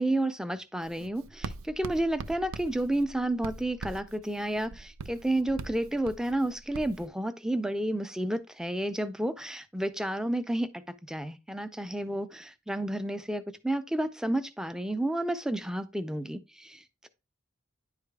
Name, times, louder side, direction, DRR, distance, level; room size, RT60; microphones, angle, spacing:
voice 1, 0.0-17.1, right 1 dB, 5° right, 0.3 m, -31 dB
Writing, 0.8-7.1, right 4 dB, 85° right, 0.4 m, -43 dB
10.0 x 4.9 x 2.2 m
head